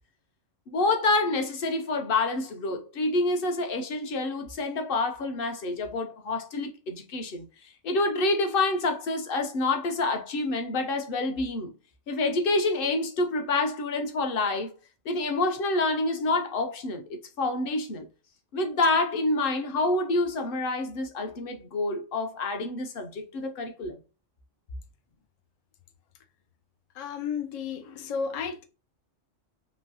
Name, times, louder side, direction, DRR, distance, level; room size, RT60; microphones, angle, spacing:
voice 1, 0.7-11.7 12.1-14.7 15.0-18.1 18.5-24.0, left 2 dB, 60° left, 0.7 m, -27 dB
voice 2, 26.9-28.6, left 6 dB, 75° left, 0.3 m, -33 dB
3.1 x 2.6 x 2.6 m
omnidirectional pair, 1.2 m